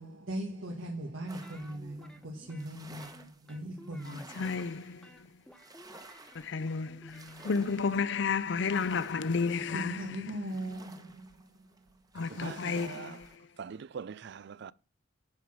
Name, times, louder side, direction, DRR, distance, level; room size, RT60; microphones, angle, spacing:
voice 1, 0.0-4.5 9.7-11.8, right 1 dB, 90° right, 1.6 m, -40 dB
sound 1, 1.3-13.4, right 2 dB, 20° right, 1.2 m, -54 dB
sound 2, 1.4-2.7 3.0-4.8 5.0-10.2, left 1 dB, 5° left, 1.2 m, -56 dB
voice 2, 4.1-5.1 6.4-10.1 12.1-13.3, left 5 dB, 65° left, 0.5 m, -32 dB
voice 3, 12.4-13.2 13.6-14.7, right 6 dB, 60° right, 0.4 m, -42 dB
10.5 x 4.9 x 5.9 m
head